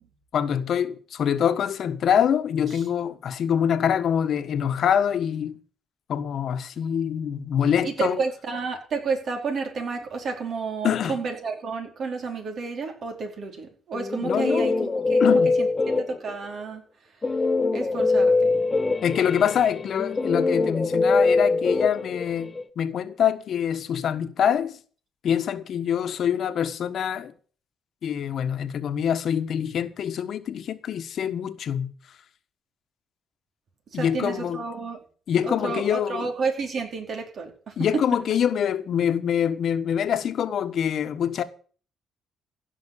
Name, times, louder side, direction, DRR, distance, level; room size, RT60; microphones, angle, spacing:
voice 1, 0.3-5.6 6.1-8.2 10.8-11.2 14.2-14.7 15.2-15.5 19.0-24.8 25.2-27.3 28.0-31.9 33.9-34.6 35.3-36.3 37.8-41.4, left 8 dB, 65° left, 1.4 m, -25 dB
voice 2, 7.8-15.7 16.0-16.8 17.7-18.5 33.9-35.0 35.4-38.0, right 4 dB, 60° right, 4.5 m, -31 dB
Guitar, 13.9-16.4 17.2-22.6, left 3 dB, 25° left, 1.3 m, -23 dB
16.0 x 6.2 x 8.5 m
cardioid pair, 90°, 0 cm